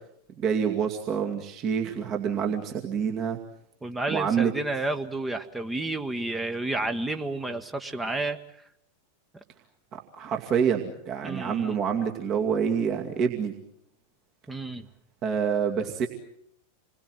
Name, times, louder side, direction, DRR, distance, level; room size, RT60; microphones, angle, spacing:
voice 1, 0.4-3.4 4.1-4.5 10.2-13.5 15.2-16.1, right 7 dB, 35° right, 2 dB, 2.4 m, -27 dB
voice 2, 3.8-8.4 11.2-11.8 14.5-14.9, right 2 dB, 10° right, 7 dB, 1.4 m, -31 dB
28.0 x 21.5 x 7.8 m, 0.74 s
figure-of-eight pair, 90°, 0 cm